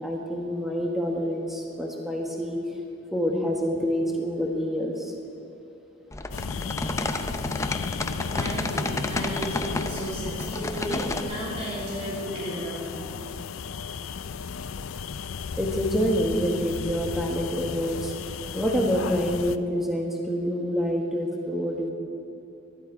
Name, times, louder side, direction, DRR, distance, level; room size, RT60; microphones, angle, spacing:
voice 1, 0.0-2.6 3.1-5.1 15.6-18.1 18.5-21.9, equal, ahead, -1 dB, 1.4 m, -27 dB
sound 1, 6.1-11.2, left 2 dB, 15° left, 0.5 m, -31 dB
sound 2, 6.3-19.6, left 5 dB, 80° left, 0.5 m, -35 dB
voice 2, 8.3-13.1, right 1 dB, 30° right, -7 dB, 3.1 m, -34 dB
19.0 x 12.5 x 4.9 m, 2.7 s
head